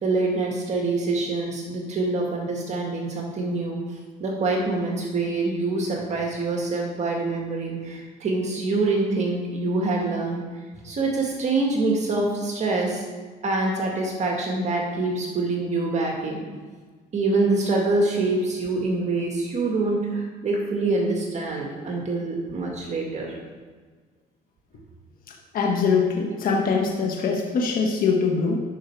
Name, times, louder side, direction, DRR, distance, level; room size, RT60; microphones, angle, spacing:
voice 1, 0.0-3.8 4.2-10.4 10.8-13.0 13.4-16.4 17.1-23.3, right 3 dB, 45° right, 0 dB, 1.8 m, -25 dB
voice 2, 25.5-28.6, left 5 dB, 55° left, 1 dB, 1.3 m, -22 dB
12.0 x 5.3 x 4.6 m, 1.4 s
cardioid pair, 110°, 17 cm